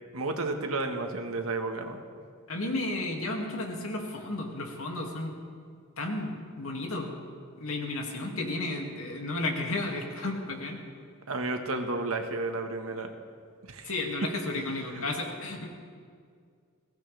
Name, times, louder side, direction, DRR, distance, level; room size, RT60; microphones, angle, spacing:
voice 1, 0.1-2.0 11.3-13.1 13.7-13.9 14.9-15.0, right 2 dB, 90° right, 5 dB, 1.5 m, -32 dB
voice 2, 2.5-5.3 6.0-7.1 7.6-10.8 13.9-15.7, left 2 dB, 80° left, 1 dB, 2.4 m, -33 dB
21.5 x 17.0 x 3.4 m, 2.1 s
head